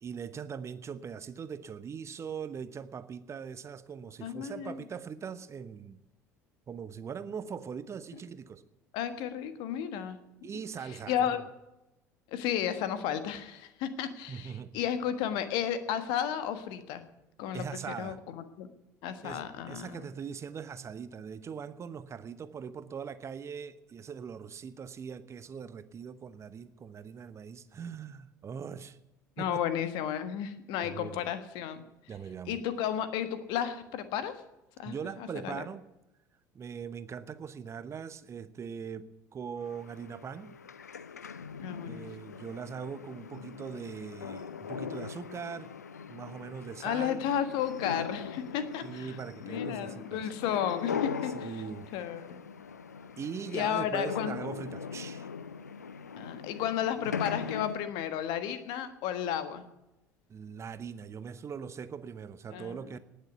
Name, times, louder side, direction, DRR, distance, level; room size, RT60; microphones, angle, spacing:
voice 1, 0.0-6.0 6.7-8.6 10.4-11.4 14.3-14.8 17.5-18.2 19.2-29.0 29.4-29.6 30.9-31.3 32.1-32.6 34.8-35.8 36.5-40.6 41.8-45.7 46.1-47.2 48.8-50.2 51.3-51.9 53.2-55.3 60.3-63.0, right 7 dB, 35° right, 13 dB, 1.0 m, -41 dB
voice 2, 4.2-4.8 8.9-10.2 10.9-11.4 12.3-17.0 17.4-18.7 19.0-20.1 29.4-31.8 32.5-34.4 34.8-35.6 41.6-42.1 46.8-51.6 51.9-52.4 53.5-54.4 56.2-59.6 62.5-63.0, left 9 dB, 60° left, 11 dB, 1.5 m, -33 dB
sound 1, 39.6-57.8, left 6 dB, 85° left, 0.5 m, -40 dB
19.0 x 6.7 x 9.2 m, 0.95 s
figure-of-eight pair, 60°, 9 cm